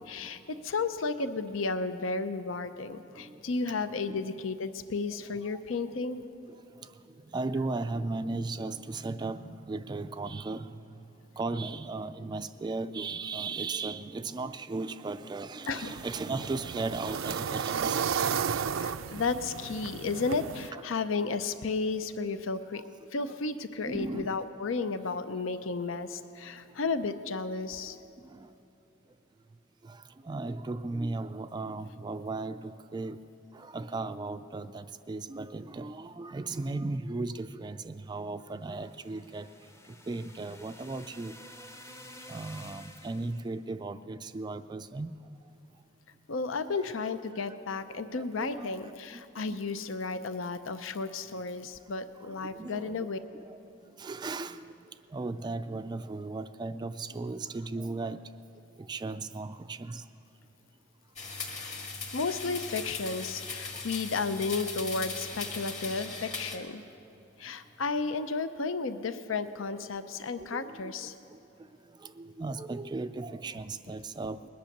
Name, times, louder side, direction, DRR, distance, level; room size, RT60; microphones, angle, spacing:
voice 1, 0.0-6.2 15.7-15.9 18.7-22.8 23.1-28.0 46.3-53.2 62.1-66.8 67.4-71.1, left 4 dB, 75° left, 11 dB, 0.6 m, -33 dB
voice 2, 7.3-10.7 11.4-18.6 20.7-20.8 23.9-24.4 28.3-28.4 29.9-30.0 30.3-33.2 33.5-39.5 40.1-41.3 42.3-45.1 48.1-48.7 49.5-49.6 52.2-53.1 53.5-53.6 54.0-54.7 55.1-58.2 58.8-60.0 62.5-62.6 70.4-71.1 72.0-74.4, right 3 dB, 20° right, 11 dB, 0.3 m, -36 dB
sound 1, 15.7-20.7, right 7 dB, 85° right, 0.4 m, -33 dB
sound 2, 38.6-43.6, left 1 dB, 15° left, 0.7 m, -51 dB
sound 3, 61.2-66.6, left 4 dB, 35° left, 1.9 m, -39 dB
20.5 x 10.5 x 6.6 m, 2.9 s
head